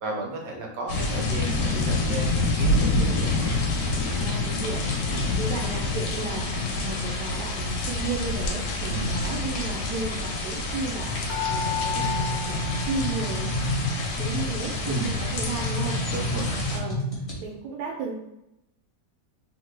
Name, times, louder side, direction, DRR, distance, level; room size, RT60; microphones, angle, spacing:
voice 1, 0.0-3.5 5.1-5.3 8.9-9.2 14.8-15.2 16.1-16.7, right 2 dB, 65° right, 0 dB, 1.0 m, -33 dB
sound 1, 0.9-16.8, left 2 dB, 80° left, 1.2 m, -27 dB
voice 2, 4.1-4.9 5.4-6.5 6.7-11.1 11.5-13.6 14.2-16.0 16.7-17.0 17.4-18.1, right 3 dB, 85° right, -1 dB, 1.2 m, -34 dB
sound 2, 11.0-17.4, left 1 dB, 35° left, 0.5 m, -31 dB
sound 3, 11.3-13.8 14.1-15.1 15.6-15.7 16.0-16.1, left 8 dB, 65° left, 1.1 m, -33 dB
3.1 x 2.1 x 3.2 m, 0.86 s
omnidirectional pair, 1.8 m